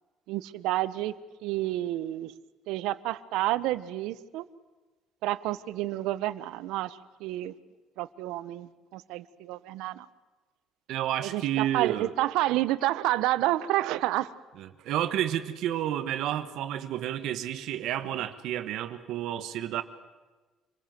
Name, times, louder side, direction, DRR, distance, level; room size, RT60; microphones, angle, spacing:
voice 1, 0.3-1.1 1.4-2.3 2.7-4.5 5.2-7.5 8.0-10.1 11.2-14.3, right 15 dB, 85° right, 16 dB, 1.0 m, -29 dB
voice 2, 10.9-12.1 14.6-19.8, right 11 dB, 65° right, 11 dB, 1.3 m, -30 dB
26.5 x 20.0 x 7.7 m, 1.2 s
cardioid pair, 160°, 0 cm